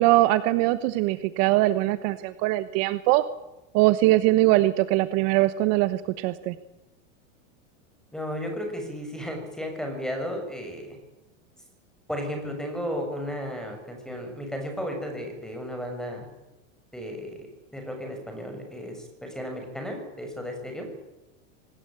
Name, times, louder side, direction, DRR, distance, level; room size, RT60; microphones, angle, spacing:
voice 1, 0.0-3.2 3.7-6.5, right 17 dB, 45° right, 13 dB, 1.2 m, -22 dB
voice 2, 8.1-11.0 12.1-16.3 16.9-17.5 17.7-20.9, equal, ahead, 4 dB, 6.4 m, -34 dB
24.5 x 19.5 x 8.9 m, 0.97 s
supercardioid pair, 145°, 39 cm